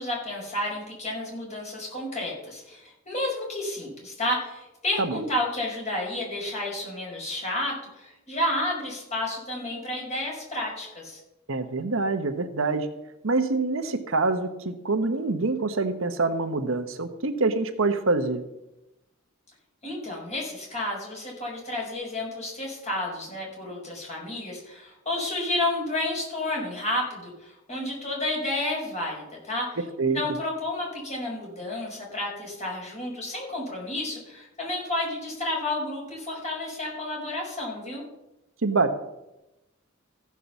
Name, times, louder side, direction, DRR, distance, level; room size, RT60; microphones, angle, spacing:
voice 1, 0.0-11.2 19.8-29.8 30.1-38.0, left 1 dB, 35° left, -2 dB, 5.3 m, -31 dB
voice 2, 11.5-12.9 13.2-18.4 30.0-30.2 38.6-39.0, right 3 dB, 70° right, 8 dB, 1.0 m, -25 dB
15.0 x 6.0 x 7.1 m, 0.93 s
head